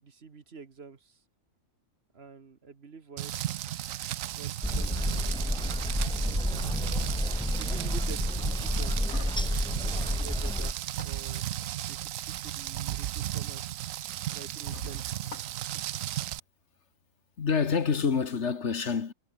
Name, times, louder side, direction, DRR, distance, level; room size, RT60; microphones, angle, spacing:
voice 1, 0.0-1.2 2.1-3.5 4.3-5.7 7.5-9.0 10.0-11.4 11.9-13.7 14.3-15.1, right 5 dB, 50° right, 1.6 m, -47 dB
Rain, 3.2-16.4, right 13 dB, 80° right, 1.0 m, -35 dB
sound 1, 4.6-10.7, left 1 dB, 5° left, 0.7 m, -30 dB
sound 2, 8.6-10.2 10.8-11.9 12.9-13.1 13.5-13.6 14.1-14.2 14.7-15.8, left 3 dB, 85° left, 3.5 m, -47 dB
voice 2, 17.4-19.1, left 5 dB, 60° left, 1.7 m, -27 dB
omnidirectional pair, 1.4 m